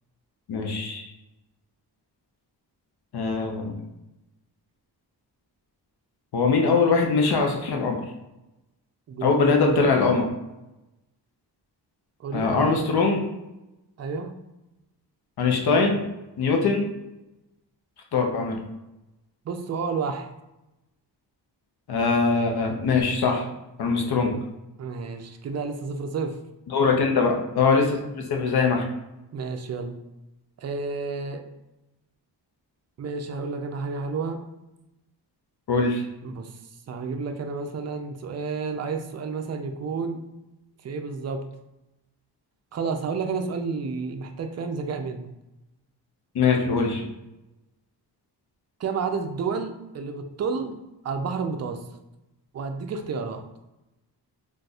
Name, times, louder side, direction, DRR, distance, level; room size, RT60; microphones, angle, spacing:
voice 1, 0.5-1.1 3.1-3.8 6.3-8.0 9.2-10.2 12.3-13.2 15.4-16.0 16.4-16.9 18.1-18.6 21.9-23.5 23.8-24.3 26.7-28.8 35.7-36.0 46.3-47.1, left 4 dB, 60° left, 2 dB, 0.8 m, -22 dB
voice 2, 9.1-9.9 12.2-12.9 14.0-14.4 19.4-20.3 24.8-26.4 29.3-30.0 30.6-31.4 33.0-34.4 36.2-36.6 36.9-40.2 40.8-41.5 42.7-45.3 48.8-50.8 51.0-51.8 52.5-53.4, right 4 dB, 40° right, 6 dB, 0.4 m, -30 dB
3.9 x 2.5 x 2.3 m, 0.96 s
cardioid pair, 85°, 43 cm